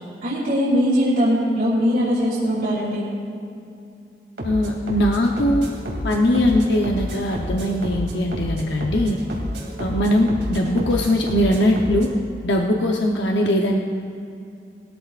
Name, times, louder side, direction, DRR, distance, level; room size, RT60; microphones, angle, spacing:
voice 1, 0.2-3.0, equal, 55° right, -10 dB, 3.1 m, -20 dB
voice 2, 4.4-5.7 6.0-9.2 9.8-12.1 12.4-13.8, left 1 dB, 85° left, 0 dB, 0.9 m, -20 dB
sound 1, 4.4-12.1, equal, 85° right, 2.6 m, -30 dB
21.0 x 13.5 x 2.5 m, 2.5 s
head